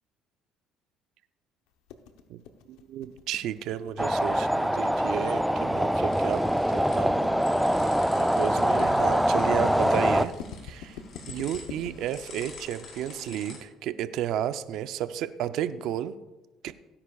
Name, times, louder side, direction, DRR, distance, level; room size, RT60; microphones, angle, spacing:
sound 1, 1.9-13.4, left 7 dB, 85° left, 0.8 m, -44 dB
voice 1, 2.7-6.4 6.7-7.4 7.7-7.9 8.2-10.3 10.6-11.0 11.3-16.1 16.6-16.7, right 11 dB, 75° right, 11 dB, 0.6 m, -32 dB
sound 2, 4.0-10.3, equal, ahead, 0.4 m, -24 dB
sound 3, 6.1-13.6, left 4 dB, 55° left, 4.1 m, -48 dB
17.0 x 9.9 x 2.4 m, 1.1 s
supercardioid pair, 90°, 0 cm